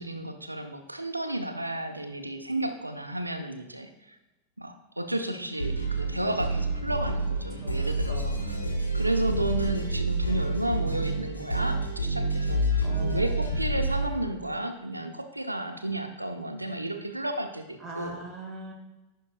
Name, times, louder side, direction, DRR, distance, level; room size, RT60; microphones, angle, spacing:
voice 1, 0.0-4.2 4.6-8.3 8.9-18.2, right 1 dB, 85° right, 7 dB, 0.7 m, -32 dB
sound 1, 5.5-14.1, right 2 dB, 85° left, 1.6 m, -28 dB
voice 2, 12.8-13.6 17.8-18.7, right 1 dB, 5° right, -5 dB, 1.8 m, -40 dB
16.0 x 5.6 x 2.3 m, 1.1 s
figure-of-eight pair, 90°, 0 cm